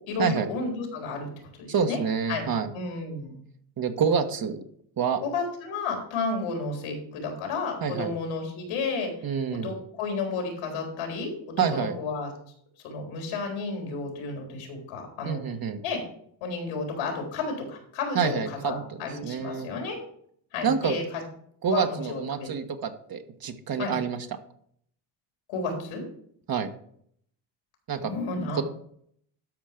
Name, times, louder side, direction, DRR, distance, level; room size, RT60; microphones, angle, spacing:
voice 1, 0.1-1.3 1.6-2.0 2.3-2.4 2.7-3.4 5.2-9.1 9.5-12.3 12.8-15.4 15.8-16.0 16.4-20.0 20.5-21.0 21.7-22.5 23.8-23.9 25.5-26.0 28.0-28.6, left 4 dB, 85° left, 2 dB, 3.9 m, -32 dB
voice 2, 1.7-2.7 3.8-4.6 5.0-5.2 7.8-8.1 9.2-9.7 11.6-12.0 15.2-15.8 18.1-19.7 20.6-21.0 21.6-24.2 26.5-26.7 27.9-28.1 28.6-28.7, right 6 dB, 45° right, 6 dB, 1.6 m, -27 dB
12.5 x 5.5 x 5.2 m, 0.64 s
supercardioid pair, 80°, 49 cm